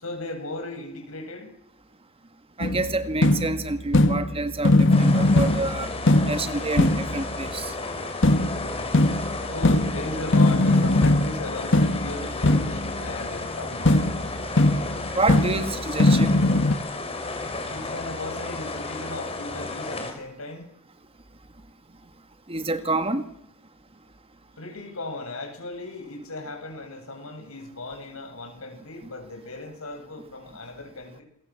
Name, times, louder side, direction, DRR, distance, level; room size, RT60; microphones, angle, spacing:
voice 1, 0.0-1.5 9.5-14.1 17.7-20.7 24.6-31.2, left 2 dB, 85° left, 7.7 m, -36 dB
sound 1, 2.6-7.4 8.2-13.1 13.9-16.8, left 2 dB, 65° left, 1.7 m, -21 dB
voice 2, 2.6-6.0 6.3-7.7 15.1-16.4 22.5-23.2, right 2 dB, 30° right, 1.9 m, -28 dB
sound 2, 4.9-20.1, left 3 dB, 30° left, 5.2 m, -33 dB
27.5 x 22.5 x 7.7 m
head